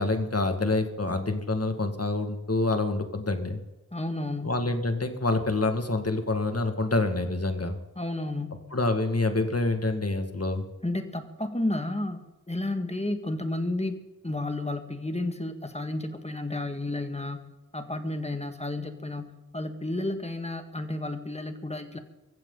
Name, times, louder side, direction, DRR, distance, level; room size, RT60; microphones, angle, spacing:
voice 1, 0.0-3.6 4.4-7.8 8.7-10.7, left 2 dB, 45° left, 6 dB, 2.0 m, -27 dB
voice 2, 3.9-4.5 8.0-8.6 10.8-12.2 12.5-17.5 17.7-22.0, left 2 dB, 20° left, 6 dB, 2.0 m, -32 dB
24.0 x 15.0 x 4.0 m, 1.1 s
wide cardioid pair, 55°, 33 cm